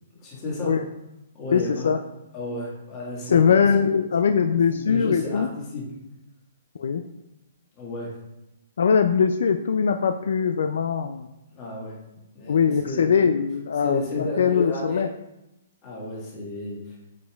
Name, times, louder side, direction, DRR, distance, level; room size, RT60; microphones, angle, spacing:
voice 1, 0.2-0.7 1.3-1.9 2.3-3.6 4.7-5.9 7.8-8.1 11.6-12.0 12.3-13.2 13.8-15.0 15.8-16.8, left 2 dB, 20° left, -5 dB, 1.7 m, -32 dB
voice 2, 1.5-2.0 3.3-5.5 6.8-7.0 8.8-11.3 12.5-15.1, left 6 dB, 70° left, 8 dB, 0.3 m, -21 dB
8.1 x 5.1 x 2.3 m, 0.91 s
hypercardioid pair, 175°, 0 cm